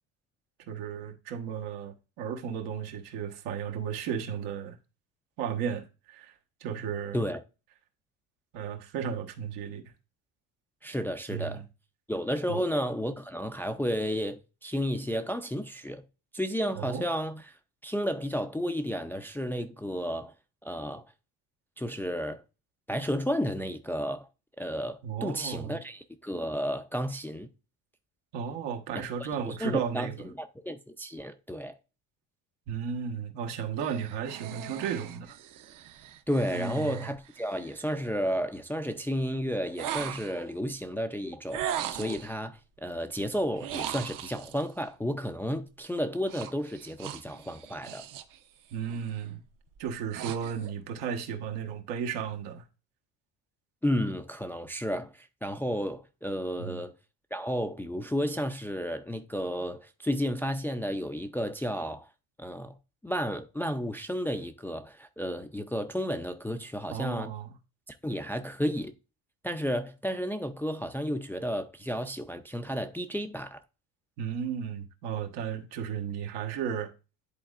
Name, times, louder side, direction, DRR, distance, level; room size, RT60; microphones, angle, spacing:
voice 1, 0.7-4.8 5.4-6.3 6.6-7.2 8.5-9.9 11.3-11.7 12.5-12.6 16.8-17.0 25.0-25.8 28.3-30.3 32.7-35.4 36.5-37.1 48.7-49.4 49.8-52.6 56.6-56.8 66.9-67.5 74.2-76.9, right 7 dB, 80° right, 1.3 m, -34 dB
voice 2, 10.8-11.6 12.1-16.0 16.3-17.6 17.8-20.3 20.6-21.0 21.8-22.4 22.9-24.3 24.6-27.5 29.2-31.7 36.3-48.0 53.8-56.9 57.3-62.1 62.4-62.7 63.0-67.3 68.0-68.9 69.4-73.6, equal, 5° left, 0.4 m, -32 dB
sound 1, 33.8-38.0 39.7-40.5 41.5-42.3 43.5-44.6 46.3-48.4 48.7-49.1 49.7-50.7, right 10 dB, 50° right, 0.7 m, -39 dB
10.5 x 4.1 x 2.4 m
cardioid pair, 115°, 40 cm